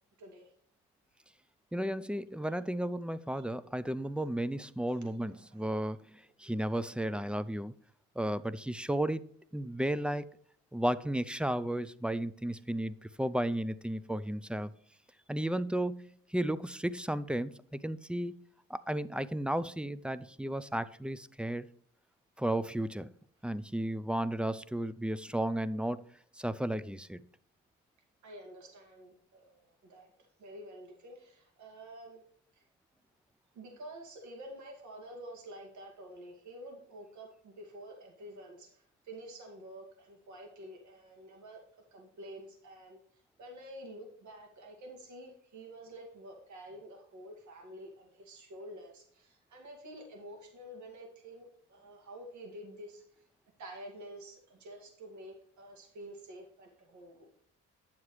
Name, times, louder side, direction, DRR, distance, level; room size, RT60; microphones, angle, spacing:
voice 1, 0.2-0.5 3.4-3.5 4.9-5.6 12.5-12.6 28.2-32.2 32.5-32.6 33.5-43.0 43.4-53.0 53.6-57.3, right 1 dB, 70° right, 2.3 m, -49 dB
voice 2, 1.7-7.7 8.2-9.2 9.5-10.3 10.7-14.8 15.3-18.3 18.7-21.7 22.4-23.1 23.4-26.0 26.4-27.2, right 1 dB, 5° right, 0.4 m, -34 dB
9.4 x 7.1 x 3.2 m
cardioid pair, 90°, 30 cm